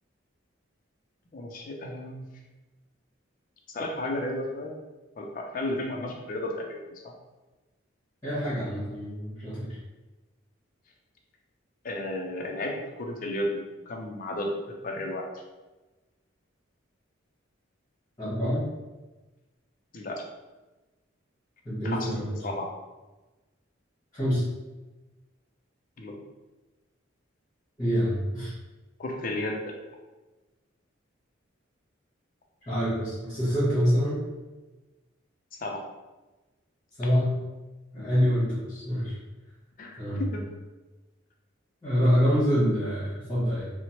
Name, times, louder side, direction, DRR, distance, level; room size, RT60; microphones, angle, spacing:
voice 1, 1.3-2.3 3.7-4.7 5.2-6.8 7.0-7.1 11.8-14.5 14.8-15.2 19.9-20.2 21.8-22.1 22.4-22.7 26.0-26.2 29.0-29.7 35.6-35.8 38.0-38.2 39.8-40.4, left 1 dB, 40° left, 1 dB, 0.4 m, -33 dB
voice 2, 8.2-9.7 18.2-18.6 21.6-22.3 24.1-24.4 27.8-28.5 32.7-34.2 37.0-37.3 37.9-39.2 40.0-40.2 41.8-43.7, equal, 15° left, -10 dB, 0.9 m, -26 dB
2.9 x 2.0 x 2.8 m, 1.2 s
head